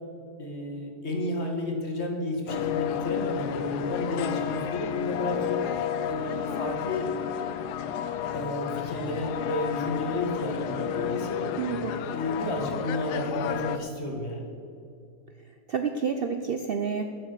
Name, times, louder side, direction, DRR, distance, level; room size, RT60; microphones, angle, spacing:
voice 1, 0.4-5.6 6.1-7.1 8.3-11.6 12.1-14.5, left 2 dB, 40° left, 1 dB, 1.9 m, -32 dB
sound 1, 2.5-13.8, left 9 dB, 80° left, 1.2 m, -31 dB
voice 2, 11.6-11.9 15.7-17.0, right 6 dB, 85° right, 6 dB, 0.5 m, -29 dB
13.0 x 7.2 x 6.6 m, 2.6 s
omnidirectional pair, 1.7 m